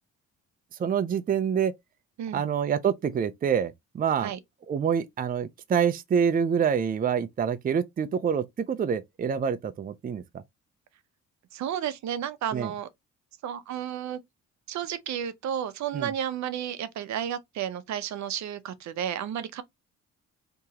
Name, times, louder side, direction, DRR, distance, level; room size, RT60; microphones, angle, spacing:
voice 1, 0.8-1.7 2.3-4.3 4.7-10.2 12.5-12.7 15.9-16.1, right 7 dB, 30° right, 0.5 m, -26 dB
voice 2, 11.5-12.9 13.4-14.2 14.7-19.6, right 9 dB, 65° right, 0.7 m, -32 dB
3.5 x 2.9 x 2.8 m
cardioid pair, 90°, 30 cm